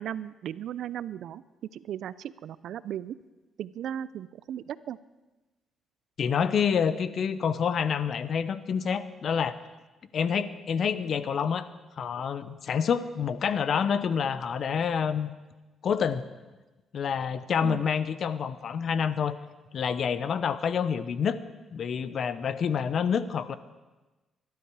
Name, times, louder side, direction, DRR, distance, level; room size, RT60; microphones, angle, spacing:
voice 1, 0.0-1.4 1.7-3.2 3.6-5.0 17.6-17.9, right 10 dB, 75° right, 17 dB, 0.5 m, -36 dB
voice 2, 6.2-9.6 10.1-11.7 12.0-15.3 15.8-16.3 16.9-19.4 19.7-21.4 21.7-23.6, left 7 dB, 55° left, 14 dB, 0.9 m, -27 dB
21.5 x 12.0 x 4.8 m, 1.2 s
cardioid pair, 90°, 0 cm